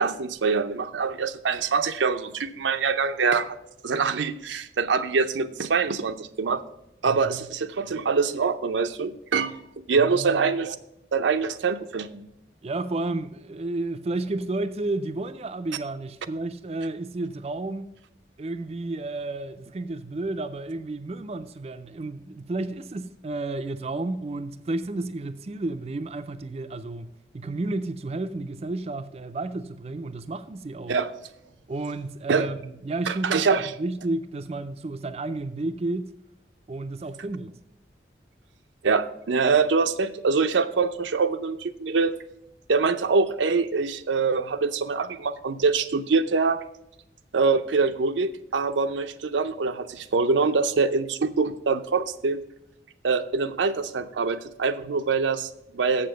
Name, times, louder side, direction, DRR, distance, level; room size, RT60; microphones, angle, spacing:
voice 1, 0.0-3.6 3.8-6.6 7.0-10.7 11.1-12.3 30.9-31.1 32.3-32.5 33.1-33.7 38.8-42.2 42.7-46.6 47.3-52.4 53.0-56.1, right 4 dB, 90° right, 0.6 m, -24 dB
voice 2, 7.1-7.5 10.0-10.5 12.6-17.9 18.4-31.0 31.7-36.1 36.7-37.6, right 2 dB, 35° right, 0.4 m, -32 dB
7.3 x 6.7 x 6.3 m
head